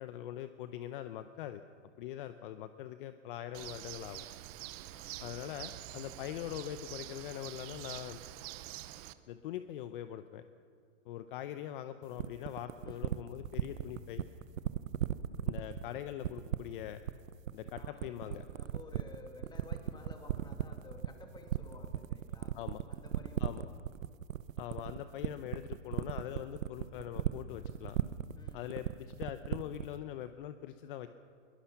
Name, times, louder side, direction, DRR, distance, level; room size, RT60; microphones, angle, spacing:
voice 1, 0.0-1.6 2.0-4.2 5.2-8.2 9.3-10.4 11.0-14.2 15.5-17.0 17.5-18.4 22.5-22.8 23.4-23.7 24.6-28.0 28.5-31.1, left 12 dB, 40° left, 10 dB, 0.8 m, -42 dB
Bird, 3.5-9.1, right 15 dB, 30° right, 0.7 m, -46 dB
voice 2, 4.8-5.6 12.8-13.2 17.8-22.6 22.9-24.0 28.4-28.8, left 3 dB, 10° left, 4 dB, 2.2 m, -55 dB
sound 1, 12.2-29.9, right 11 dB, 80° right, 0.9 m, -35 dB
21.5 x 20.5 x 5.9 m, 2.2 s
hypercardioid pair, 145°, 39 cm